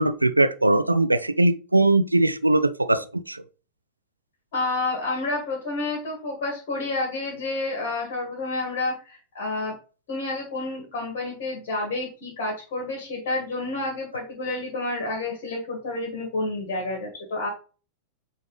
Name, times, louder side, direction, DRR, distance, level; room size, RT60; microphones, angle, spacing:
voice 1, 0.0-3.4, right 2 dB, 85° right, 0.3 m, -21 dB
voice 2, 4.5-9.7 10.1-17.5, left 2 dB, 50° left, 2.1 m, -29 dB
8.6 x 3.2 x 3.5 m
figure-of-eight pair, 90°, 0 cm